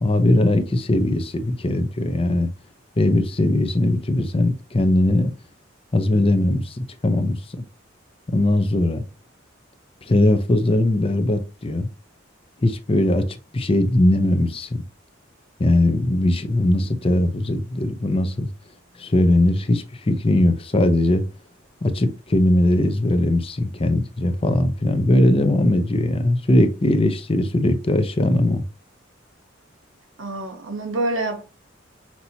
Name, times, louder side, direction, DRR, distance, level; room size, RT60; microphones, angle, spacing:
voice 1, 0.0-2.5 3.0-5.3 5.9-7.6 8.3-9.0 10.1-11.9 12.6-14.8 15.6-18.5 19.0-21.2 21.8-28.6, left 1 dB, 30° left, 0.6 m, -20 dB
voice 2, 30.2-31.4, right 2 dB, 70° right, 1.0 m, -26 dB
5.9 x 2.8 x 2.8 m
head